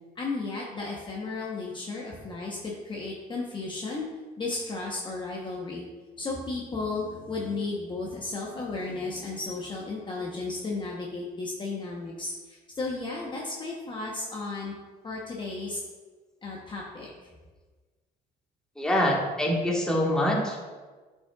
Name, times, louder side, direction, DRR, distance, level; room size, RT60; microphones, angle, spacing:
voice 1, 0.2-4.1 4.4-5.9 6.2-14.7 15.0-15.8 16.4-17.1, left 3 dB, 30° left, -3 dB, 0.9 m, -34 dB
voice 2, 18.8-20.6, left 1 dB, 5° left, -3 dB, 1.5 m, -25 dB
8.4 x 5.4 x 2.3 m, 1.3 s
cardioid pair, 110°, 17 cm